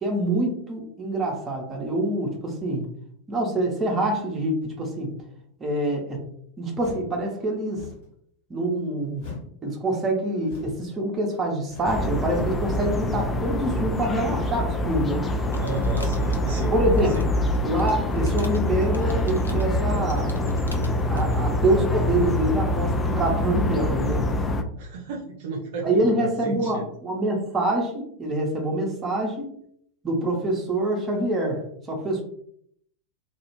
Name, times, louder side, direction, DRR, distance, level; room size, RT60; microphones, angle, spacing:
voice 1, 0.0-2.8 3.3-5.1 5.6-6.2 6.6-7.8 8.5-9.2 9.6-15.3 16.7-17.2 17.6-20.3 21.1-24.2 25.8-29.5 30.0-31.6 31.9-32.2, right 1 dB, 20° right, 0 dB, 0.7 m, -25 dB
sound 1, 6.8-7.2 7.7-8.1 9.2-9.6 10.4-10.9 11.7-12.1, left 4 dB, 50° left, 1.2 m, -41 dB
sound 2, 11.8-24.6, left 1 dB, 15° left, 0.3 m, -25 dB
sound 3, 15.4-21.3, left 2 dB, 80° left, 0.4 m, -45 dB
voice 2, 15.6-16.7 17.0-17.3 24.8-26.8, right 4 dB, 50° right, -1 dB, 0.5 m, -33 dB
2.4 x 2.3 x 3.0 m, 0.66 s
figure-of-eight pair, 90°, 0 cm